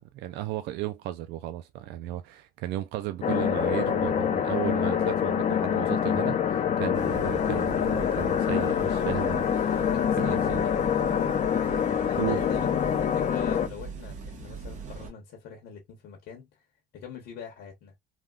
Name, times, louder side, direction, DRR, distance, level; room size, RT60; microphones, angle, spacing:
voice 1, 0.1-9.8 10.2-10.6 12.2-12.4, right 14 dB, 85° right, 0.4 m, -34 dB
sound 1, 3.2-13.7, left 8 dB, 45° left, 0.6 m, -26 dB
sound 2, 6.9-15.1, right 5 dB, 45° right, 1.2 m, -41 dB
voice 2, 9.8-10.7 12.1-16.6 16.9-17.9, left 7 dB, 80° left, 1.1 m, -43 dB
3.4 x 2.2 x 2.3 m
cardioid pair, 110°, 17 cm